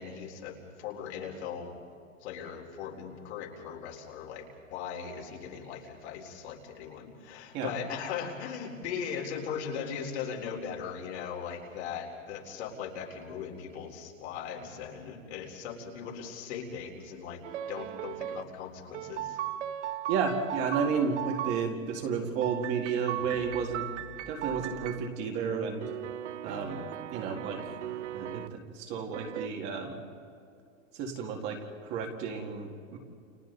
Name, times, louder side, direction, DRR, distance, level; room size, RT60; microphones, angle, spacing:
voice 1, 0.0-1.7 2.2-17.4 17.7-19.4, left 7 dB, 55° left, 0 dB, 4.1 m, -39 dB
sound 1, 17.4-18.4 18.9-21.6 22.4-25.1 25.8-28.5 29.1-29.5, right 12 dB, 60° right, 0.9 m, -37 dB
voice 2, 20.1-23.9 24.3-25.9 26.4-26.9 27.1-27.6 28.1-30.0 30.9-33.0, right 6 dB, 25° right, 1 dB, 2.1 m, -32 dB
sound 2, 23.1-24.9, left 3 dB, 75° left, 5.5 m, -49 dB
30.0 x 28.5 x 4.0 m, 2.4 s
supercardioid pair, 170°, 40 cm